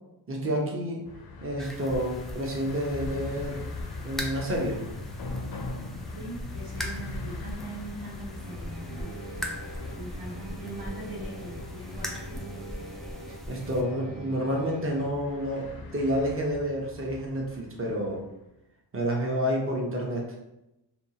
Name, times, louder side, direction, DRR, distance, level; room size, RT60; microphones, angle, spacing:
voice 1, 0.3-1.0 1.4-3.6 4.0-4.8 13.5-18.2 18.9-20.3, equal, 30° right, -1 dB, 0.8 m, -29 dB
sound 1, 1.0-18.3, left 3 dB, 60° left, 0.5 m, -41 dB
sound 2, 1.6-13.8, equal, ahead, 0.3 m, -41 dB
voice 2, 5.9-9.1 9.9-12.4, right 2 dB, 55° right, -7 dB, 1.1 m, -41 dB
sound 3, 8.3-15.1, right 1 dB, 80° right, 0.8 m, -42 dB
2.7 x 2.3 x 2.8 m, 0.91 s
cardioid pair, 50°, 42 cm